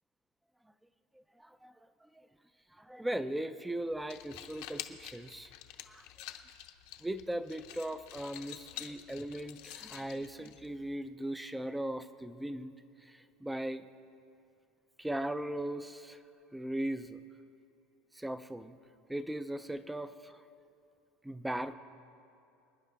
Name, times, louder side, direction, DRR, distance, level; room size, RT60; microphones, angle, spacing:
voice 1, 1.4-1.7 2.2-2.3 2.8-5.5 5.9-6.0 7.0-12.7 13.1-13.9 15.0-16.2 16.5-17.2 18.1-18.8 19.1-20.4 21.2-21.7, right 1 dB, 5° right, 12 dB, 0.3 m, -38 dB
sound 1, 3.9-11.0, left 13 dB, 60° left, 0.7 m, -48 dB
24.5 x 10.0 x 3.5 m, 2.6 s
cardioid pair, 170°, 0 cm